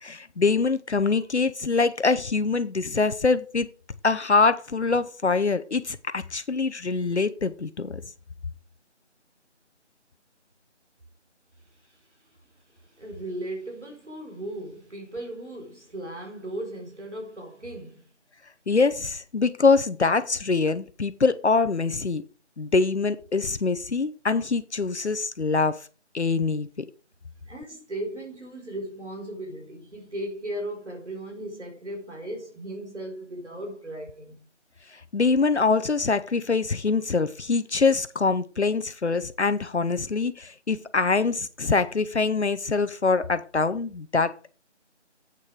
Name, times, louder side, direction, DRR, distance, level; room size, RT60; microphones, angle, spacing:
voice 1, 0.0-3.7 4.0-8.0 18.7-22.2 22.6-25.9 26.1-26.9 35.1-44.4, left 4 dB, 70° left, 0.8 m, -24 dB
voice 2, 13.0-18.1 27.5-34.4, right 1 dB, 75° right, 3.9 m, -36 dB
8.5 x 6.5 x 4.9 m
figure-of-eight pair, 170°, 36 cm